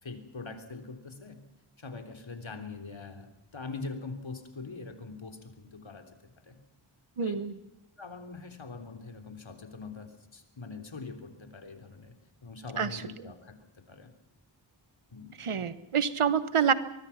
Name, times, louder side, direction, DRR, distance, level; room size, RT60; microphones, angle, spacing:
voice 1, 0.0-1.4 1.8-6.6 7.2-7.4 8.0-12.1 12.4-14.1 15.1-15.7, left 4 dB, 65° left, 6 dB, 3.5 m, -43 dB
voice 2, 7.2-7.5 12.8-13.0 15.4-16.7, right 7 dB, 80° right, 14 dB, 1.3 m, -27 dB
23.5 x 22.5 x 5.8 m, 0.93 s
cardioid pair, 50°, 50 cm